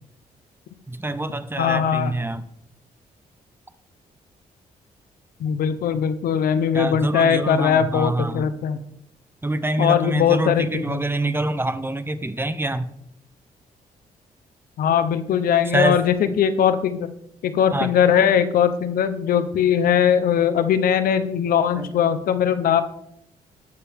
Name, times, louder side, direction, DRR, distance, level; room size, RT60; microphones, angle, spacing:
voice 1, 0.9-2.4 6.7-8.5 9.4-12.8 15.7-16.0 17.7-17.9 21.8-21.9, right 1 dB, 15° right, 12 dB, 0.9 m, -25 dB
voice 2, 1.6-2.1 5.4-8.8 9.8-11.0 14.8-17.1 17.4-22.8, left 8 dB, 80° left, 11 dB, 0.9 m, -20 dB
18.5 x 6.9 x 3.6 m, 0.75 s
cardioid pair, 80°, 15 cm